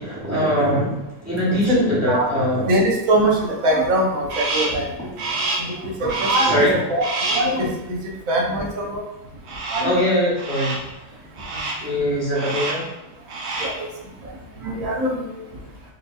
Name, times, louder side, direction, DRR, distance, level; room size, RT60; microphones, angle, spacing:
voice 1, 0.0-2.7 6.4-6.8 9.8-10.7 11.8-12.9, equal, 15° right, -7 dB, 0.8 m, -21 dB
voice 2, 2.6-4.9 5.6-8.0 8.3-9.0 9.7-9.9 13.6-13.9 14.6-15.4, right 1 dB, 80° right, 0 dB, 1.2 m, -22 dB
Crow, 4.3-4.9 5.2-5.8 6.1-6.7 7.0-7.6 9.5-10.0 10.4-10.9 11.4-11.9 12.3-12.9 13.2-13.9, right 2 dB, 60° right, 0.9 m, -27 dB
4.9 x 2.5 x 2.4 m, 0.96 s
omnidirectional pair, 1.4 m